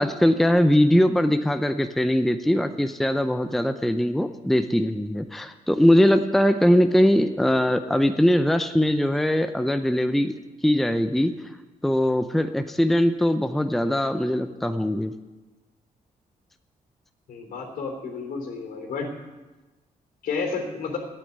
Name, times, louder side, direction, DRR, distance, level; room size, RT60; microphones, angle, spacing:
voice 1, 0.0-10.3 10.6-11.3 11.8-15.1, equal, ahead, 9 dB, 0.5 m, -21 dB
voice 2, 17.3-19.1 20.2-21.0, left 4 dB, 80° left, 4 dB, 3.1 m, -31 dB
12.0 x 8.8 x 9.4 m, 1.2 s
cardioid pair, 135°, 15 cm